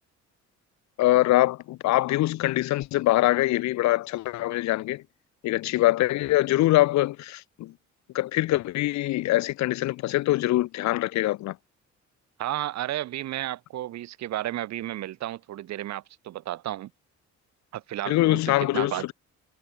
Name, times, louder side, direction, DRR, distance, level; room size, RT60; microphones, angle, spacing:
voice 1, 1.0-5.0 5.4-7.7 8.1-11.6 18.1-19.1, left 16 dB, 65° left, 0.4 m, -23 dB
voice 2, 12.4-16.9 17.7-19.1, right 13 dB, 65° right, 0.7 m, -33 dB
cardioid pair, 90°, 30 cm